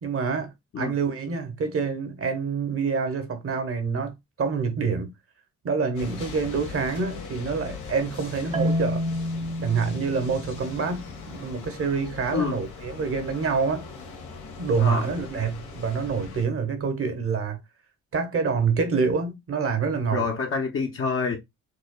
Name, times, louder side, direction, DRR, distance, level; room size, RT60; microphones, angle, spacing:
voice 1, 0.0-5.1 5.6-9.1 9.6-13.8 14.6-17.6 18.1-20.2, right 5 dB, 50° right, 1.0 m, -27 dB
sound 1, 5.9-16.5, left 5 dB, 90° left, 1.3 m, -40 dB
Marimba xylophone, 8.5-11.5, left 1 dB, 25° right, 0.6 m, -30 dB
voice 2, 20.1-21.4, left 5 dB, 45° left, 0.9 m, -27 dB
4.8 x 2.3 x 2.2 m
cardioid pair, 90°, 30 cm